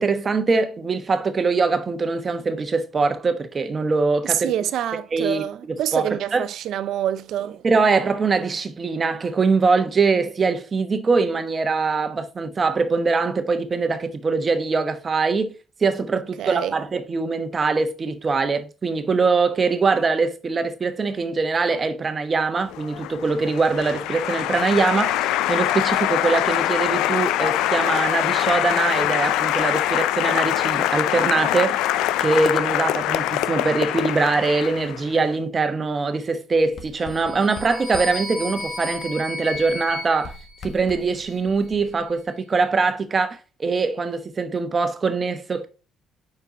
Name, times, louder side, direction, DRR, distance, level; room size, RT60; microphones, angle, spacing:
voice 1, 0.0-4.5 5.1-5.4 5.9-6.0 6.3-6.4 7.6-15.5 15.8-40.3 40.6-45.7, right 4 dB, 35° right, 1.1 m, -22 dB
voice 2, 4.2-7.6 16.1-16.8, right 11 dB, 75° right, 0.5 m, -26 dB
Applause, 22.7-35.2, left 13 dB, 85° left, 0.3 m, -23 dB
Writing, 36.6-39.2 39.5-42.2, left 3 dB, 50° left, 1.4 m, -43 dB
sound 1, 37.1-41.4, left 2 dB, 15° left, 2.4 m, -34 dB
5.4 x 4.5 x 3.9 m
cardioid pair, 85°, 0 cm